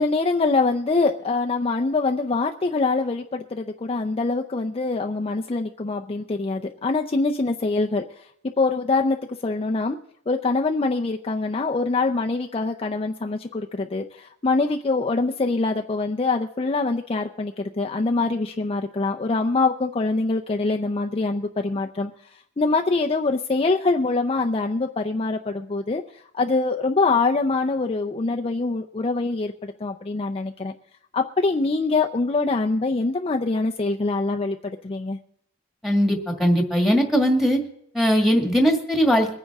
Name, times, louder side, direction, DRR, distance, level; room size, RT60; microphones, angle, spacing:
voice 1, 0.0-8.3 8.6-9.2 9.4-10.0 10.3-30.7 31.1-35.2, left 3 dB, 30° left, 3 dB, 0.5 m, -24 dB
voice 2, 35.8-37.6 37.9-39.4, equal, ahead, 3 dB, 1.8 m, -20 dB
22.5 x 9.5 x 3.6 m, 0.73 s
head